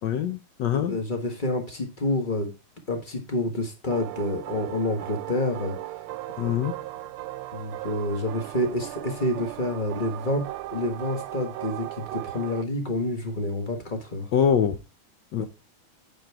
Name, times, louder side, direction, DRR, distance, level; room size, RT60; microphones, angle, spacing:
voice 1, 0.0-1.0 6.4-6.7 14.3-14.8 15.3-15.5, left 8 dB, 70° left, 1.2 m, -24 dB
voice 2, 0.7-2.5 2.9-6.0 6.3-6.6 7.5-14.3 15.4-15.5, left 1 dB, 25° left, 1.3 m, -28 dB
sound 1, 3.9-12.6, right 16 dB, 80° right, 1.4 m, -37 dB
9.0 x 4.7 x 4.6 m
omnidirectional pair, 2.3 m